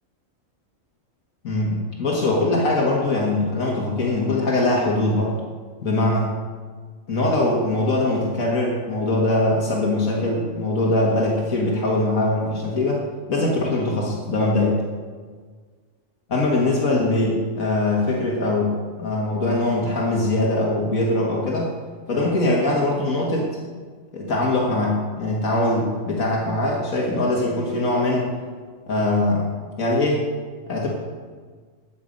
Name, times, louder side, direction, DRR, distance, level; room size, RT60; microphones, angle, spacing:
voice 1, 1.4-5.4 5.8-6.3 7.1-13.0 13.3-14.8 16.3-21.7 22.1-23.5 24.1-28.3 28.9-29.5 29.8-30.2 30.7-30.9, left 2 dB, 80° left, -2 dB, 2.0 m, -22 dB
12.0 x 8.7 x 5.2 m, 1.6 s
omnidirectional pair, 1.4 m